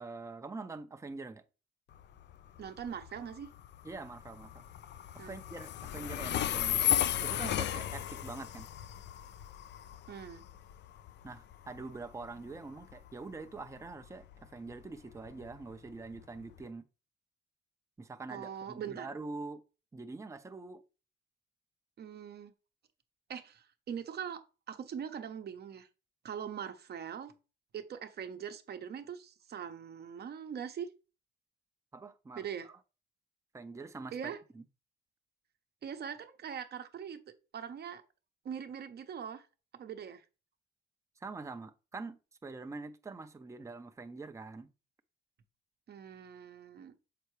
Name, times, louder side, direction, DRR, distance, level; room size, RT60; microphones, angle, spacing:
voice 1, 0.0-1.4 3.8-4.7 5.1-8.7 11.2-16.8 18.0-19.6 19.9-20.8 31.9-32.4 33.5-34.6 41.2-44.7, right 3 dB, 15° right, 0.6 m, -44 dB
Train, 1.9-16.6, left 11 dB, 60° left, 0.4 m, -36 dB
voice 2, 2.6-3.5 5.2-5.3 10.1-10.4 18.3-19.1 22.0-22.5 23.3-25.9 26.2-27.3 27.7-30.9 32.4-32.7 34.1-34.4 35.8-37.2 37.5-38.0 38.4-39.5 39.7-40.2 45.9-46.9, right 8 dB, 55° right, 0.9 m, -42 dB
6.8 x 4.4 x 3.1 m
cardioid pair, 90°, 20 cm